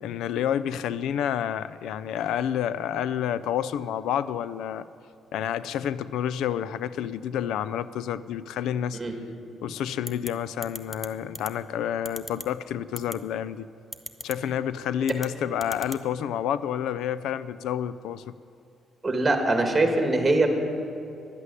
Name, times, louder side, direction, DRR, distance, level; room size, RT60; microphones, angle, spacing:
voice 1, 0.0-4.8 5.3-9.0 9.6-13.7 14.2-18.2, left 9 dB, 85° left, 16 dB, 0.3 m, -29 dB
sound 1, 10.1-10.3 10.6-11.1 11.3-11.5 12.0-12.4 13.0-13.1 13.9-14.3 15.0-15.3 15.6-16.0, left 1 dB, 10° left, 0.8 m, -36 dB
voice 2, 19.0-20.5, right 2 dB, 20° right, 4 dB, 2.0 m, -22 dB
11.0 x 8.1 x 9.7 m, 2.8 s
cardioid pair, 90°, 0 cm